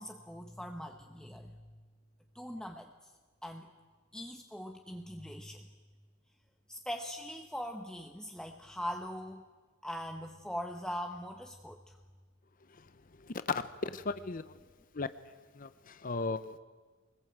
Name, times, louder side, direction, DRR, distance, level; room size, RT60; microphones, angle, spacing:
voice 1, 0.0-1.8 2.3-2.9 3.4-3.7 4.1-5.7 6.7-9.4 9.8-11.9, equal, 5° left, 3 dB, 0.9 m, -41 dB
voice 2, 13.5-14.4 14.9-15.1 15.6-16.6, left 4 dB, 40° left, 12 dB, 0.7 m, -35 dB
24.0 x 20.0 x 8.0 m, 1.4 s
head